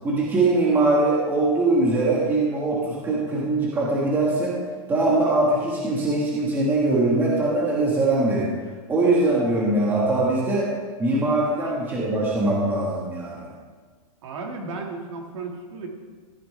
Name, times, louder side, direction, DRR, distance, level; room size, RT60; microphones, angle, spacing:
voice 1, 0.0-4.6 4.9-8.5 8.9-10.7 11.0-13.5, right 2 dB, 10° right, -5 dB, 1.5 m, -22 dB
voice 2, 14.2-15.9, right 3 dB, 50° right, 1 dB, 2.0 m, -34 dB
14.5 x 10.0 x 3.3 m, 1.5 s
supercardioid pair, 170°, 19 cm